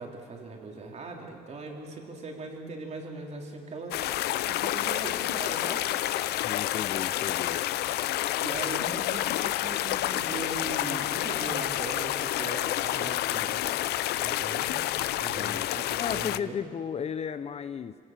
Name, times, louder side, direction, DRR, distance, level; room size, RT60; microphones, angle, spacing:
voice 1, 0.0-4.0 4.5-5.8 8.3-13.7 14.2-14.7 15.2-16.6, right 3 dB, 40° right, 1 dB, 3.7 m, -40 dB
sound 1, 3.9-16.4, left 14 dB, 75° left, 0.6 m, -29 dB
voice 2, 6.4-7.6 15.3-15.7 16.0-18.0, left 7 dB, 40° left, 13 dB, 0.6 m, -34 dB
25.0 x 18.5 x 7.5 m, 2.4 s
cardioid pair, 110°, 17 cm